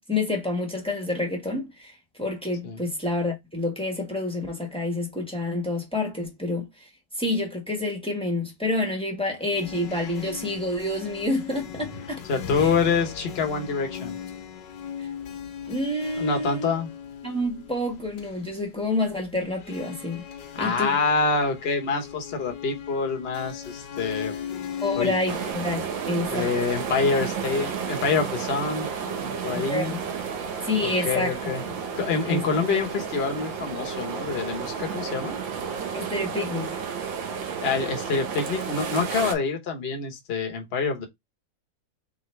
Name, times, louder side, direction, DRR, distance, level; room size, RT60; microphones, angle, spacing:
voice 1, 0.1-6.7 7.2-12.2 12.6-12.7 15.0-15.1 15.7-16.7 17.2-20.2 20.6-20.9 24.8-26.5 29.5-30.0 30.6-31.3 32.3-32.4 35.9-36.8, left 2 dB, 5° left, 1.1 m, -28 dB
sound 1, 9.4-25.5, left 8 dB, 70° left, 1.6 m, -38 dB
voice 2, 12.3-14.2 16.2-16.9 20.5-24.3 25.0-25.1 26.3-30.0 30.8-31.6 32.0-35.4 37.5-41.1, left 4 dB, 40° left, 1.1 m, -26 dB
sound 2, 25.3-39.3, right 6 dB, 80° right, 1.7 m, -32 dB
3.9 x 3.8 x 3.2 m
omnidirectional pair, 2.1 m